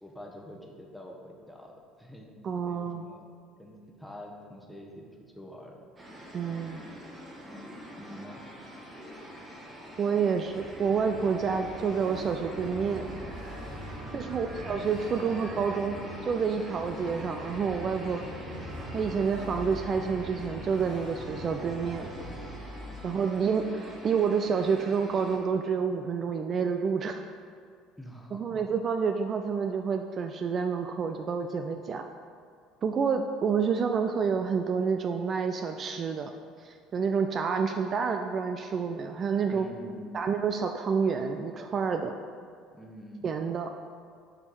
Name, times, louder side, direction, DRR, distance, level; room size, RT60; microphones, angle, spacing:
voice 1, 0.0-2.4 2.6-3.3 3.6-5.8 8.0-8.4 14.0-14.4 22.9-23.2 28.0-28.7 39.5-40.3 42.7-43.3, equal, ahead, 0 dB, 1.0 m, -46 dB
voice 2, 2.4-3.1 6.3-6.8 10.0-13.1 14.1-18.2 18.9-22.1 23.0-27.2 28.3-32.0 32.8-36.3 36.6-39.7 40.1-42.1 43.2-43.7, right 6 dB, 45° right, 6 dB, 0.3 m, -28 dB
sound 1, 6.0-25.4, equal, 25° right, 1.4 m, -45 dB
sound 2, 10.3-24.2, equal, 85° right, 1.5 m, -42 dB
6.5 x 3.6 x 4.6 m, 2.1 s
hypercardioid pair, 65°, 0 cm